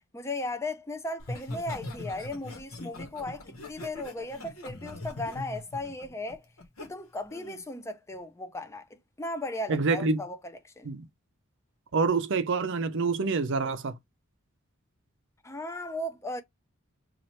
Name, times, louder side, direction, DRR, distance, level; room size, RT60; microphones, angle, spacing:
voice 1, 0.1-6.4 6.8-10.4 10.6-10.9 15.4-16.4, left 2 dB, 15° left, 0.5 m, -36 dB
Laughter, 1.2-6.9 7.3-7.6, left 1 dB, 90° left, 1.1 m, -41 dB
voice 2, 9.7-10.2 10.8-11.1 11.9-14.0, right 4 dB, 60° right, 0.6 m, -27 dB
3.1 x 2.5 x 4.2 m
head